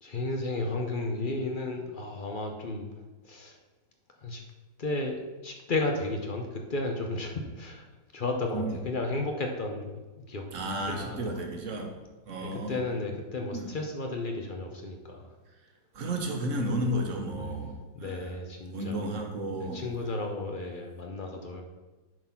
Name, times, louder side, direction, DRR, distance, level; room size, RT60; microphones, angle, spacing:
voice 1, 0.0-2.9 3.2-3.6 4.2-4.4 4.8-7.8 8.1-10.4 10.9-11.4 12.4-15.3 17.4-17.6 17.9-19.0 19.6-21.6, left 2 dB, 55° left, 2 dB, 0.5 m, -33 dB
voice 2, 10.5-11.9 12.3-12.8 13.5-13.7 15.9-18.3 18.7-19.9, right 1 dB, 50° right, 2 dB, 1.4 m, -32 dB
9.2 x 4.0 x 5.8 m, 1.2 s
omnidirectional pair, 1.9 m